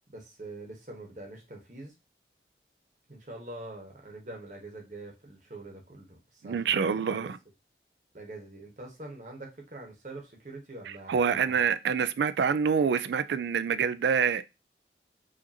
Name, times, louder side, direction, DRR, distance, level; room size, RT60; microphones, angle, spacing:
voice 1, 0.0-1.9 3.1-7.3 8.1-11.6, right 2 dB, 45° right, 1.1 m, -44 dB
voice 2, 6.4-7.4 10.9-14.5, right 6 dB, 75° right, 0.3 m, -26 dB
4.9 x 2.6 x 2.7 m
head